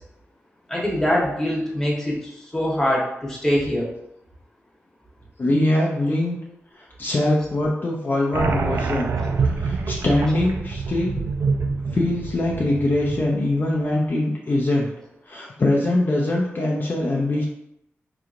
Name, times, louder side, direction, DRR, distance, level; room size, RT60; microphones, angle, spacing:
voice 1, 0.7-3.8 7.4-7.5, equal, 10° left, -5 dB, 1.2 m, -23 dB
voice 2, 5.4-6.4 6.8-9.1 9.4-11.2 11.9-14.9 15.3-17.5, left 1 dB, 45° left, -3 dB, 0.6 m, -22 dB
sound 1, 8.3-13.6, right 4 dB, 70° right, 0.3 m, -26 dB
4.6 x 2.9 x 2.5 m, 0.81 s
wide cardioid pair, 115°, 5 cm